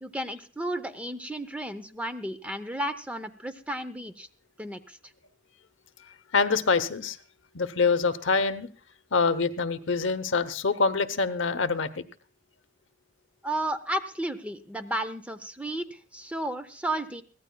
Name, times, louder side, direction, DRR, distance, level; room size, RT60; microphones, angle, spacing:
voice 1, 0.0-4.3 4.6-5.0 13.4-17.2, right 1 dB, 5° right, 10 dB, 0.8 m, -33 dB
voice 2, 6.3-7.2 7.5-8.7 9.1-12.0, left 4 dB, 70° left, 11 dB, 0.9 m, -25 dB
23.0 x 16.0 x 2.3 m, 0.39 s
head